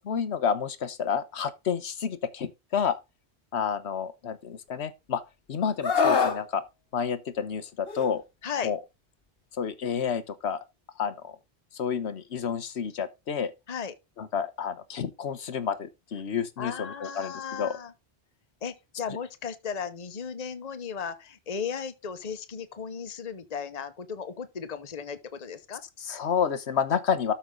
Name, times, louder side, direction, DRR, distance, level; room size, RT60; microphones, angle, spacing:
voice 1, 0.1-3.0 3.5-5.2 5.5-6.6 6.9-8.2 8.6-8.8 9.5-10.6 11.0-11.3 11.7-13.5 14.2-17.8 26.0-27.3, left 7 dB, 85° left, 1.3 m, -30 dB
Screaming, 5.8-6.4 7.9-8.1, left 5 dB, 65° left, 1.5 m, -23 dB
voice 2, 16.6-17.9 18.6-25.8, left 6 dB, 40° left, 1.1 m, -36 dB
13.0 x 5.5 x 3.8 m
omnidirectional pair, 1.1 m